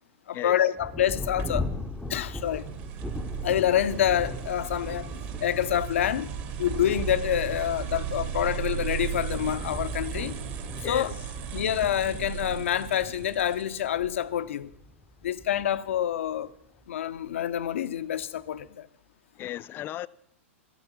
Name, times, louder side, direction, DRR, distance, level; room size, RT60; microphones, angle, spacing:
voice 1, 0.3-1.7 2.1-2.7 3.4-5.1 5.4-6.3 6.6-10.4 10.9-11.1 11.5-14.7 15.2-16.5 16.9-18.9, left 10 dB, 70° left, 0.7 m, -27 dB
Thunder, 0.8-16.8 17.6-17.7 18.2-18.7, left 2 dB, ahead, 0.8 m, -40 dB
sound 1, 1.4-14.1, right 8 dB, 45° right, 2.6 m, -36 dB
voice 2, 19.4-20.1, left 14 dB, 30° left, 0.4 m, -35 dB
13.5 x 11.0 x 6.1 m
hypercardioid pair, 110°, 7 cm